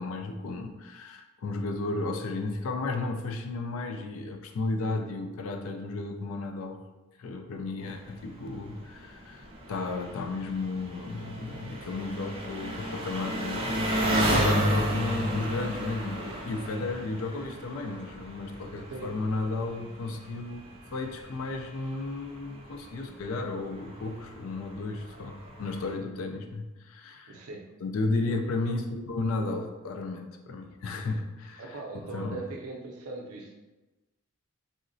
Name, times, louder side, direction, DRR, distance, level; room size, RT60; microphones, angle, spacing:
voice 1, 0.0-6.8 7.2-20.6 20.9-27.4 27.8-32.4, left 3 dB, 75° left, 5 dB, 0.4 m, -33 dB
Engine, 7.8-25.9, right 1 dB, 25° right, 0.3 m, -34 dB
voice 2, 18.6-19.1 27.3-27.7 31.6-33.5, right 3 dB, 85° right, 1 dB, 0.5 m, -40 dB
3.7 x 2.1 x 2.5 m, 1.1 s
head